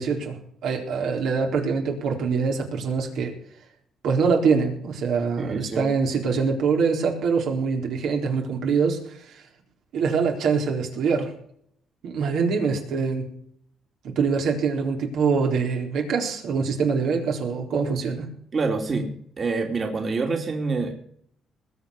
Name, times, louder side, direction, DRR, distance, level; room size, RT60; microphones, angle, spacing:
voice 1, 0.0-3.3 4.0-9.4 9.9-11.3 12.0-13.3 14.0-18.3, right 5 dB, 80° right, 2 dB, 4.0 m, -24 dB
voice 2, 5.4-5.9 18.5-20.9, right 4 dB, 40° right, 3 dB, 2.8 m, -27 dB
20.5 x 6.9 x 7.1 m, 0.66 s
cardioid pair, 90°, 0 cm